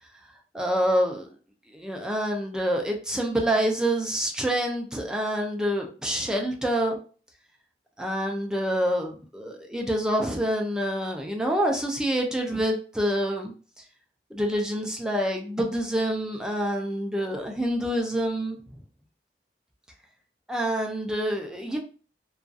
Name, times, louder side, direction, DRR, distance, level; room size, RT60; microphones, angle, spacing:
voice 1, 0.5-1.3 1.7-7.0 8.0-13.5 14.3-18.6 20.5-21.8, equal, 5° right, 1 dB, 0.3 m, -27 dB
2.6 x 2.3 x 2.3 m, 0.40 s
head